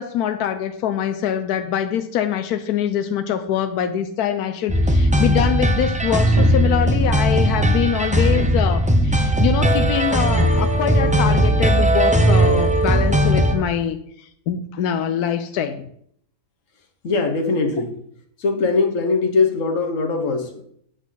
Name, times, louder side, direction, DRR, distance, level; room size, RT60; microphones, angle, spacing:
voice 1, 0.0-15.9, left 9 dB, 90° left, 9 dB, 1.2 m, -24 dB
sound 1, 4.7-13.5, right 1 dB, 10° right, 0.4 m, -18 dB
voice 2, 17.0-18.0 18.4-20.6, left 4 dB, 60° left, 5 dB, 1.6 m, -21 dB
8.2 x 8.1 x 4.0 m, 0.66 s
omnidirectional pair, 1.6 m